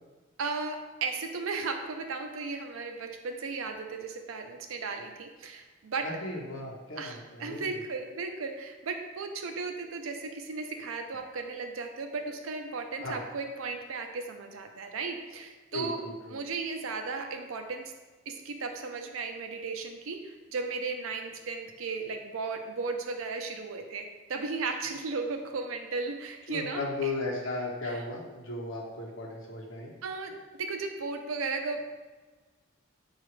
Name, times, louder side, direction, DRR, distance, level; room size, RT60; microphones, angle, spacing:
voice 1, 0.4-6.0 7.0-16.0 16.3-17.8 18.3-27.1 27.8-28.0 30.0-31.9, right 4 dB, 80° right, 5 dB, 0.5 m, -35 dB
voice 2, 6.0-7.6 13.0-13.2 15.7-16.4 26.5-29.9, left 2 dB, 65° left, -2 dB, 0.8 m, -36 dB
5.7 x 2.4 x 3.1 m, 1.3 s
head